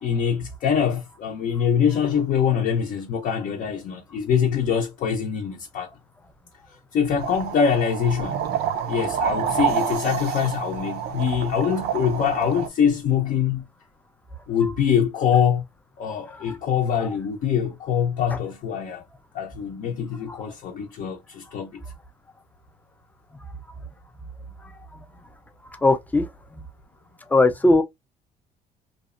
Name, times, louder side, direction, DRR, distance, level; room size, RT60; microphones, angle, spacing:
voice 1, 0.0-5.9 6.9-8.4 8.9-13.7 14.5-15.6 16.0-19.0 19.3-21.8, left 7 dB, 55° left, 0.6 m, -24 dB
sound 1, 7.2-12.7, right 7 dB, 75° right, 0.5 m, -28 dB
voice 2, 25.8-26.3 27.3-27.8, left 2 dB, 10° left, 0.4 m, -18 dB
2.7 x 2.1 x 2.4 m
cardioid pair, 110°, 17 cm